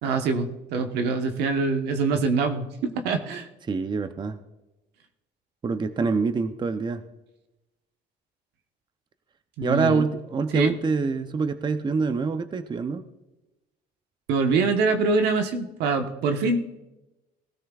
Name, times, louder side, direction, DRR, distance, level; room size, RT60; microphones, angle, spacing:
voice 1, 0.0-3.5 9.6-10.1 10.5-10.7 14.3-16.6, right 4 dB, 85° right, 6 dB, 1.2 m, -24 dB
voice 2, 3.7-4.4 5.6-7.0 9.6-13.0, right 4 dB, 25° right, 10 dB, 0.7 m, -25 dB
19.5 x 13.5 x 2.4 m, 1.0 s
cardioid pair, 110°, 17 cm